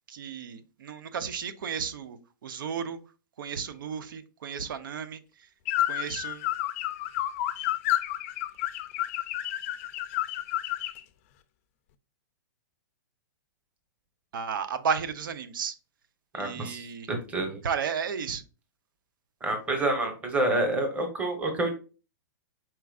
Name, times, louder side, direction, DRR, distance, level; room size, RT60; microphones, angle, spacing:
voice 1, 0.1-3.0 3.4-5.2 5.9-6.4 14.3-15.8 16.3-17.1 17.6-18.4, right 6 dB, 80° right, 0.7 m, -33 dB
sound 1, 5.7-11.0, left 13 dB, 40° left, 0.4 m, -30 dB
voice 2, 16.3-17.6 19.4-21.7, right 2 dB, 10° right, 0.9 m, -28 dB
4.7 x 4.4 x 2.4 m
hypercardioid pair, 155°, 11 cm